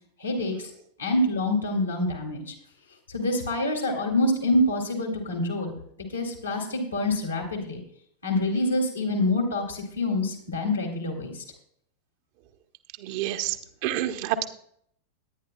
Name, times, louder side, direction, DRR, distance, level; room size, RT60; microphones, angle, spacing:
voice 1, 0.2-0.7 1.0-2.4 3.1-5.8 6.1-7.8 8.2-11.4, left 1 dB, 80° left, 0 dB, 2.6 m, -26 dB
voice 2, 13.0-13.6 13.8-14.5, right 12 dB, 45° right, 7 dB, 0.9 m, -28 dB
19.5 x 9.8 x 2.3 m, 0.66 s
figure-of-eight pair, 90°, 0 cm